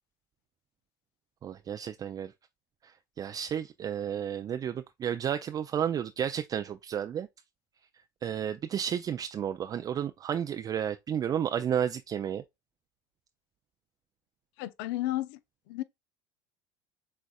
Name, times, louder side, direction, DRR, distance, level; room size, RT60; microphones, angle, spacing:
voice 1, 1.4-2.3 2.8-7.3 8.2-12.4, right 9 dB, 30° right, 0.4 m, -32 dB
voice 2, 14.6-15.4 15.7-15.8, left 16 dB, 65° left, 0.6 m, -32 dB
6.4 x 3.5 x 2.3 m
hypercardioid pair, 80°, 12 cm